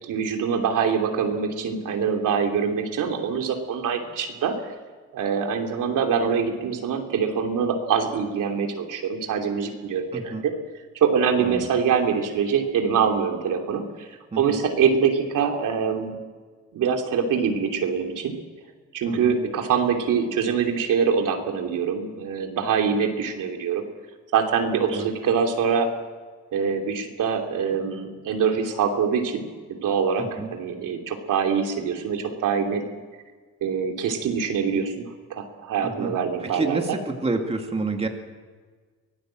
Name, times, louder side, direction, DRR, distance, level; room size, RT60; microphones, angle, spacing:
voice 1, 0.0-4.7 5.1-10.5 10.9-14.1 14.4-16.2 16.7-18.4 18.9-23.8 24.3-25.9 26.5-32.8 33.6-37.0, right 6 dB, 80° right, 3 dB, 3.1 m, -24 dB
voice 2, 10.1-10.4 11.4-11.7 14.3-14.6 19.1-19.5 24.9-25.1 30.2-30.5 35.8-36.1 36.4-38.1, right 3 dB, 20° right, 3 dB, 2.2 m, -29 dB
24.0 x 18.0 x 7.6 m, 1.5 s
cardioid pair, 130°, 31 cm